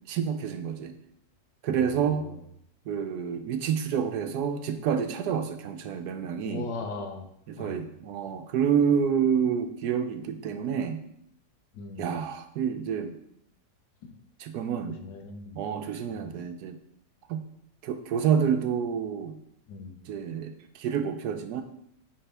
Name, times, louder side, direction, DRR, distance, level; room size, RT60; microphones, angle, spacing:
voice 1, 0.1-0.9 1.6-2.3 2.9-6.7 7.6-11.0 12.0-13.2 14.4-15.0 15.5-16.8 17.3-17.4 17.8-19.4 20.1-21.6, right 7 dB, 75° right, 8 dB, 1.0 m, -28 dB
voice 2, 1.7-2.4 6.4-7.3 7.6-7.9 11.7-12.2 14.0-14.1 15.0-15.6 16.1-16.3 19.7-20.0, left 3 dB, 90° left, 5 dB, 1.5 m, -39 dB
9.0 x 3.5 x 3.3 m, 0.73 s
omnidirectional pair, 1.9 m